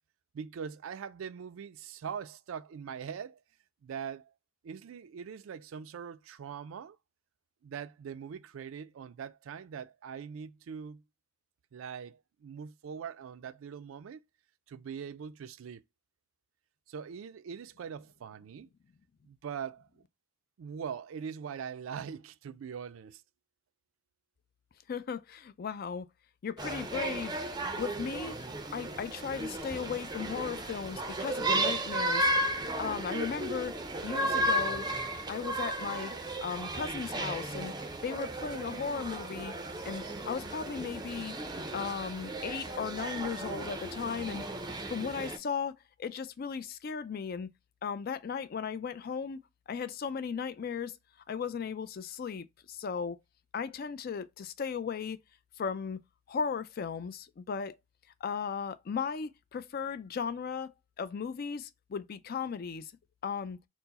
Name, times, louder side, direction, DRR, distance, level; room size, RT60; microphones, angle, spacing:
voice 1, 0.3-3.4 3.8-4.3 4.6-7.0 7.6-11.0 11.7-14.2 14.7-15.8 16.9-18.7 19.3-19.9 20.6-23.2, right 7 dB, 85° right, 0.4 m, -42 dB
voice 2, 24.9-26.1 26.4-27.3 27.8-28.4 28.7-32.3 32.8-33.8 34.0-34.8 35.3-36.1 36.4-37.7 38.0-39.5 39.8-41.3 41.7-44.4 44.9-47.5 47.8-49.4 49.7-51.0 51.3-53.2 53.5-55.2 55.6-56.0 56.3-57.8 58.2-62.9 63.2-63.6, left 6 dB, 50° left, 0.4 m, -36 dB
sound 1, 26.6-45.4, right 1 dB, 20° right, 0.4 m, -34 dB
4.5 x 2.0 x 4.0 m
head